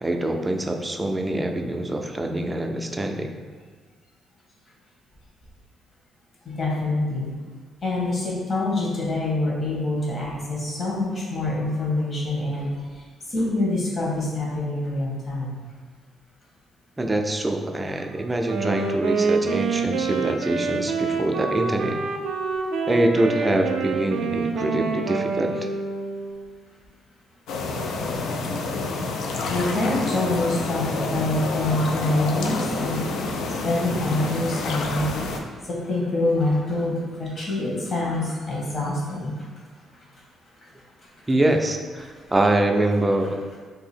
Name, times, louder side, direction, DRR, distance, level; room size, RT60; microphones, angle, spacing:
voice 1, 0.0-3.3 17.0-22.0 22.9-25.7 41.3-43.4, right 1 dB, 15° right, 4 dB, 0.4 m, -24 dB
voice 2, 6.5-7.3 7.8-12.7 13.3-15.6 29.5-33.0 33.6-35.3 35.7-39.3, left 2 dB, 40° left, -4 dB, 1.2 m, -25 dB
Wind instrument woodwind instrument, 18.4-26.5, right 4 dB, 80° right, 0.4 m, -27 dB
sound 1, 27.5-35.4, left 3 dB, 80° left, 0.4 m, -28 dB
2.8 x 2.7 x 4.2 m, 1.5 s
cardioid pair, 90°, 0 cm